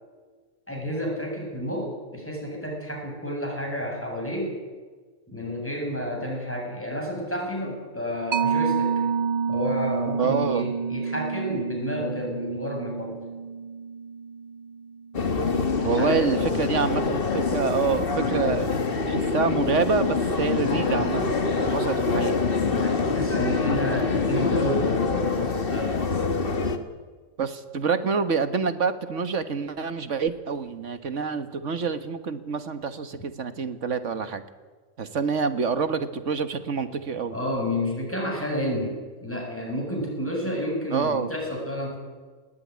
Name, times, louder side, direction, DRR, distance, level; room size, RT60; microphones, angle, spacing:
voice 1, 0.7-4.5 5.3-9.0 9.5-13.2 15.8-16.4 22.7-26.0 37.3-42.0, equal, 10° left, 0 dB, 7.3 m, -30 dB
Mallet percussion, 8.3-15.4, right 6 dB, 45° right, 0.7 m, -29 dB
voice 2, 10.2-10.7 15.8-18.7 19.1-21.2 21.6-22.4 27.4-34.4 35.0-37.3 40.9-41.3, right 5 dB, 65° right, 10 dB, 1.8 m, -27 dB
sound 1, 15.1-26.8, left 4 dB, 45° left, 1.6 m, -25 dB
19.5 x 16.0 x 9.6 m, 1.4 s
omnidirectional pair, 1.3 m